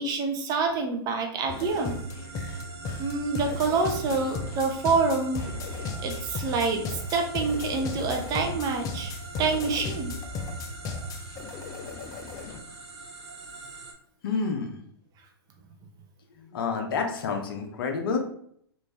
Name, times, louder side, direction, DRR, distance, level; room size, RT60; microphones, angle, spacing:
voice 1, 0.0-2.0 3.0-5.4 6.0-10.1, right 4 dB, 30° right, 3 dB, 0.6 m, -27 dB
sound 1, 1.5-12.6, left 3 dB, 25° left, 0.4 m, -35 dB
sound 2, 1.5-13.9, right 3 dB, 90° right, 0.8 m, -44 dB
voice 2, 14.2-14.8 16.5-18.2, left 5 dB, 60° left, 4 dB, 0.7 m, -29 dB
3.2 x 2.6 x 3.3 m, 0.66 s
hypercardioid pair, 110°, 13 cm